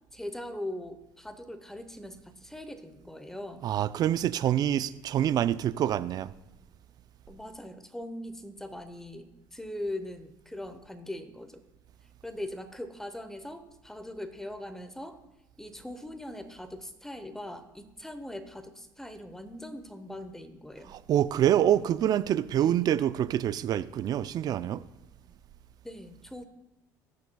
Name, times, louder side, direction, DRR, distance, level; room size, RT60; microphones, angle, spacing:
voice 1, 0.1-3.7 7.3-11.6 12.2-15.2 15.6-20.9 22.6-22.9 25.8-26.4, left 1 dB, 5° left, 9 dB, 0.9 m, -41 dB
voice 2, 3.6-6.3 20.9-24.8, right 11 dB, 50° right, 15 dB, 0.4 m, -26 dB
19.5 x 6.7 x 2.3 m, 0.93 s
supercardioid pair, 95°, 9 cm